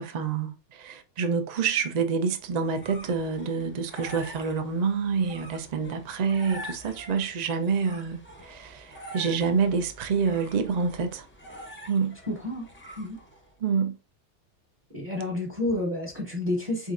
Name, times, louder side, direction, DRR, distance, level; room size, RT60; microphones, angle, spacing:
voice 1, 0.0-11.3 11.9-12.2 13.6-13.9, right 5 dB, 45° right, 0.6 m, -27 dB
sound 1, 2.4-13.5, equal, 10° left, 0.7 m, -46 dB
voice 2, 12.3-12.7 13.0-13.2 14.9-16.9, left 2 dB, 30° right, 1.1 m, -30 dB
4.1 x 3.7 x 2.4 m
omnidirectional pair, 1.2 m